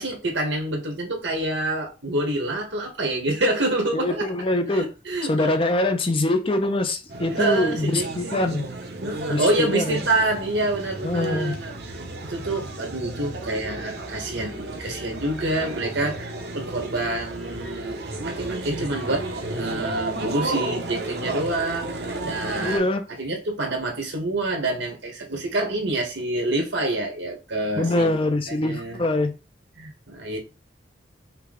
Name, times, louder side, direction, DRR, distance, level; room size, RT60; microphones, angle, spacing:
voice 1, 0.0-4.3 4.7-5.7 7.3-8.5 9.0-11.7 12.2-22.9 23.2-28.2 28.5-29.0 29.8-30.4, right 2 dB, 80° right, 1.6 m, -27 dB
voice 2, 3.9-4.9 5.2-8.7 9.3-10.0 11.0-11.5 22.6-23.1 27.8-29.3, left 2 dB, 30° left, 0.6 m, -24 dB
sound 1, 7.1-22.8, right 2 dB, 60° right, 0.9 m, -33 dB
5.6 x 2.3 x 4.0 m
head